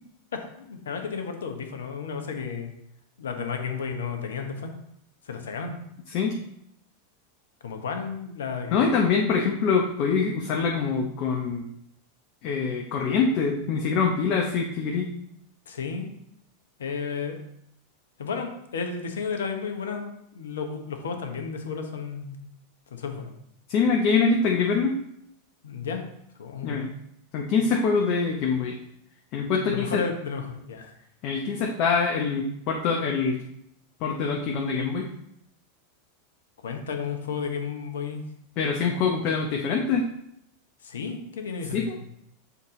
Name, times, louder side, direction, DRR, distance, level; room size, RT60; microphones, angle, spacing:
voice 1, 0.3-2.7 3.2-4.7 5.2-5.8 7.6-8.8 15.7-16.1 16.8-17.4 18.2-22.4 22.9-23.3 25.6-26.0 26.4-26.8 29.7-30.9 36.6-38.2 40.8-42.0, left 5 dB, 70° left, 5 dB, 1.0 m, -33 dB
voice 2, 8.6-11.6 12.4-15.1 23.7-25.0 26.6-26.9 27.3-28.8 29.3-30.0 31.2-33.4 34.0-35.1 38.6-40.0 41.7-42.0, left 5 dB, 50° left, 0 dB, 0.8 m, -24 dB
7.0 x 4.0 x 3.7 m, 0.75 s
figure-of-eight pair, 90°, 0 cm